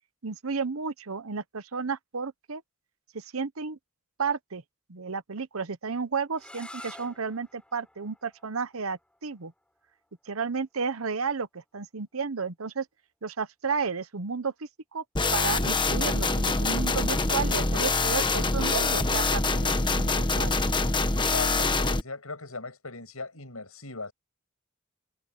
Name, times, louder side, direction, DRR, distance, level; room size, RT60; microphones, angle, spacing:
voice 1, 0.2-2.6 3.1-3.8 4.2-4.6 4.9-9.5 10.3-12.9 13.2-15.0 15.3-20.5, right 5 dB, 75° right, 1.0 m, -32 dB
sound 1, 6.3-12.1, left 1 dB, 5° left, 6.7 m, -51 dB
sound 2, 15.2-22.0, left 3 dB, 20° left, 1.2 m, -25 dB
voice 2, 21.2-24.1, left 3 dB, 80° left, 7.4 m, -38 dB
head